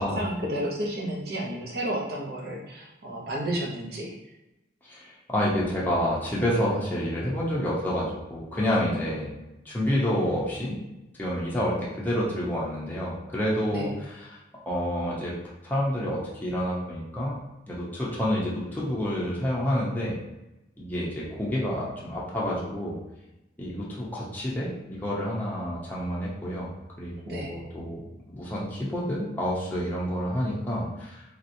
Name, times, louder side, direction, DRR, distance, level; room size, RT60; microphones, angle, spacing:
voice 1, 0.0-4.1 13.7-13.9 27.3-27.5, right 1 dB, 55° right, -1 dB, 0.7 m, -31 dB
voice 2, 4.8-9.3 9.7-10.8 11.2-14.4 14.7-15.3 15.6-17.4 17.7-20.2 20.8-23.0 23.6-26.7 27.0-28.0 28.3-31.2, equal, 10° left, -7 dB, 0.7 m, -28 dB
3.3 x 2.9 x 2.6 m, 0.94 s
head